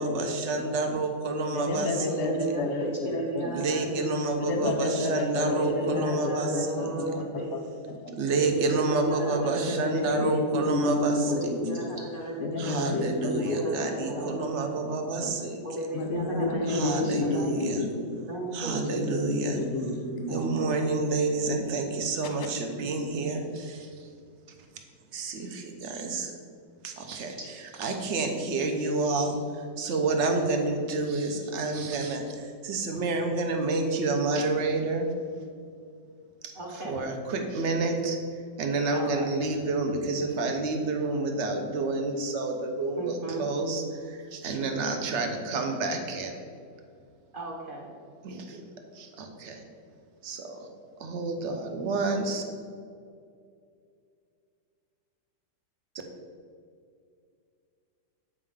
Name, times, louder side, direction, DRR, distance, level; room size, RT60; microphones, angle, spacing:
voice 1, 0.0-2.3 3.5-6.7 8.2-11.5 11.8-11.9 12.6-15.9 16.7-17.9 18.5-19.6 20.3-24.1 25.1-26.3 26.8-35.1 36.4-38.2 38.6-46.4 48.2-48.6 48.9-49.6 50.2-50.7 51.0-52.4, right 3 dB, 55° right, 4 dB, 0.8 m, -29 dB
voice 2, 1.5-3.6 4.4-7.2 8.0-8.1 9.6-11.9 12.4-13.6 14.0-14.1 15.2-15.3 15.9-18.2 18.7-20.4, left 2 dB, 50° left, 3 dB, 1.0 m, -30 dB
voice 3, 2.1-4.2 5.4-7.6 8.3-10.4 11.3-14.7 15.6-17.5 18.3-19.3 20.3-21.0 36.5-37.0 38.9-39.3 43.0-43.5 47.3-47.9, right 2 dB, 35° right, -2 dB, 1.0 m, -35 dB
8.3 x 5.1 x 3.6 m, 2.3 s
omnidirectional pair, 2.0 m